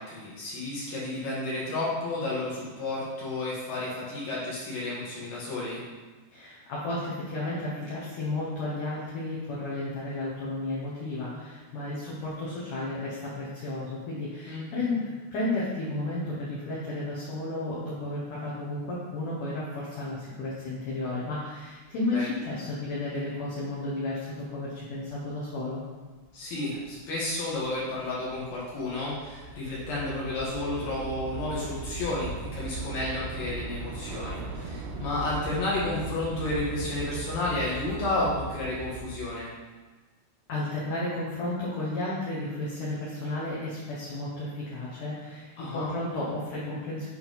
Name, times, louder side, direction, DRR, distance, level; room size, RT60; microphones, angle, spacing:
voice 1, 0.0-5.8 14.5-14.6 22.1-22.3 26.3-39.5 45.6-45.9, left 2 dB, 60° left, -7 dB, 2.8 m, -31 dB
voice 2, 6.3-25.8 40.5-47.1, left 2 dB, 80° left, -8 dB, 1.8 m, -33 dB
Train / Subway metro underground, 26.2-26.4 26.7-39.3, right 3 dB, 80° right, 2.6 m, -39 dB
9.3 x 4.3 x 4.0 m, 1.3 s
omnidirectional pair, 5.7 m